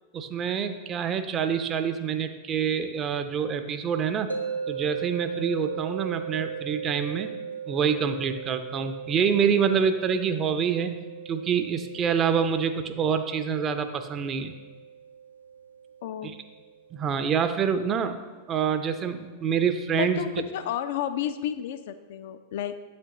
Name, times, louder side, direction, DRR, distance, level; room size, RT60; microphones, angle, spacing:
voice 1, 0.1-4.3 4.7-7.3 7.7-11.0 11.3-14.5 16.2-16.3 16.9-20.2, right 7 dB, 30° right, 9 dB, 0.5 m, -26 dB
sound 1, 4.3-17.4, right 7 dB, 80° right, 0.5 m, -38 dB
voice 2, 16.0-16.4 20.0-22.8, left 10 dB, 55° left, 10 dB, 0.3 m, -31 dB
7.9 x 6.1 x 3.0 m, 1.3 s
figure-of-eight pair, 90°, 0 cm